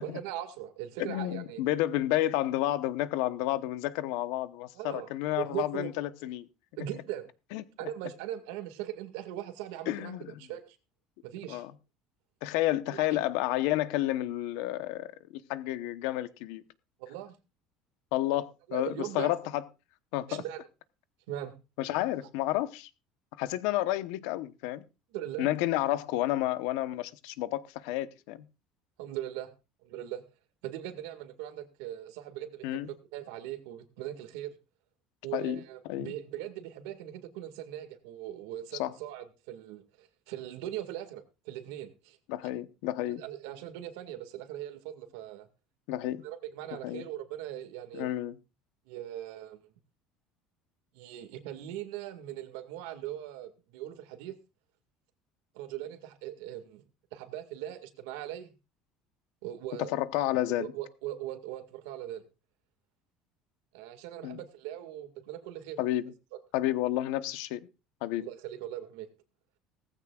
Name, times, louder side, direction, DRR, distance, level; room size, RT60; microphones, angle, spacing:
voice 1, 0.0-1.6 4.7-5.1 5.3-5.9 6.8-7.3 7.8-10.8 11.2-11.6 12.9-13.2 17.0-17.4 18.7-19.3 20.3-20.7 21.3-21.6 25.1-25.5 29.0-29.5 29.8-30.2 30.6-34.6 35.2-42.2 43.0-45.5 46.2-48.1 48.9-49.7 50.9-54.4 55.5-56.8 57.1-58.5 59.4-60.0 60.6-62.2 63.7-65.8 68.2-69.1, right 12 dB, 85° right, 1.9 m, -40 dB
voice 2, 1.1-6.5 7.5-7.6 9.9-10.3 11.5-11.7 12.4-16.6 18.1-19.6 20.1-20.4 21.8-22.9 23.4-24.8 25.4-28.4 32.6-32.9 35.3-35.6 35.8-36.1 38.8-38.9 42.3-43.2 45.9-46.2 46.8-47.0 47.9-48.3 59.8-60.7 64.2-64.4 65.8-66.1 66.5-67.7 68.0-68.3, left 15 dB, 80° left, 0.9 m, -30 dB
17.5 x 15.0 x 2.4 m
cardioid pair, 145°, 0 cm